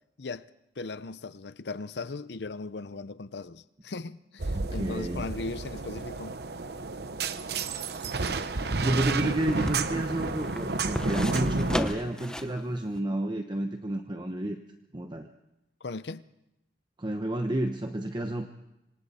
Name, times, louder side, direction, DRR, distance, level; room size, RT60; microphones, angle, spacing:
voice 1, 0.8-6.4 15.8-16.3, left 3 dB, 70° left, 0.7 m, -38 dB
sound 1, 4.4-11.8, right 3 dB, 65° right, 0.9 m, -31 dB
voice 2, 4.5-5.3 8.8-14.6 14.9-15.3 17.0-18.5, right 1 dB, 25° right, 1.0 m, -31 dB
sound 2, 7.5-12.6 12.9-13.0, equal, 5° left, 1.0 m, -36 dB
26.0 x 26.0 x 4.3 m
head